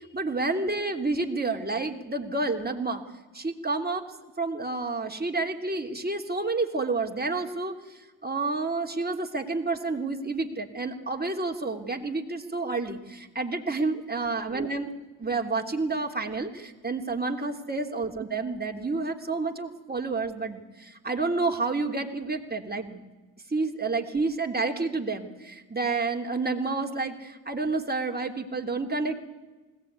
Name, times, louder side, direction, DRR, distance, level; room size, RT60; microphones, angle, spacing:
voice 1, 0.1-3.0 3.3-4.0 4.4-14.9 15.2-23.0 23.5-29.2, right 3 dB, 20° right, 2 dB, 3.1 m, -29 dB
20.5 x 18.0 x 9.6 m, 1.2 s
supercardioid pair, 50°, 45 cm